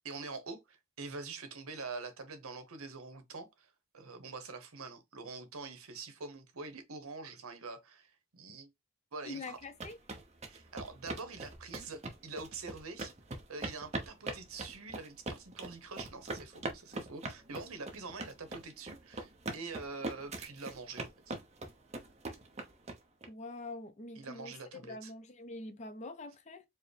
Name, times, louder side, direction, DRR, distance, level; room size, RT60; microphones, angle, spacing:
voice 1, 0.0-8.7 9.1-9.6 10.5-13.1 13.5-21.3 24.1-25.1, right 4 dB, 80° right, 0.9 m, -45 dB
voice 2, 9.2-10.0 23.3-26.6, left 2 dB, 30° left, 0.4 m, -45 dB
sound 1, 9.5-23.3, right 2 dB, 30° right, 0.7 m, -41 dB
4.7 x 2.0 x 3.2 m
head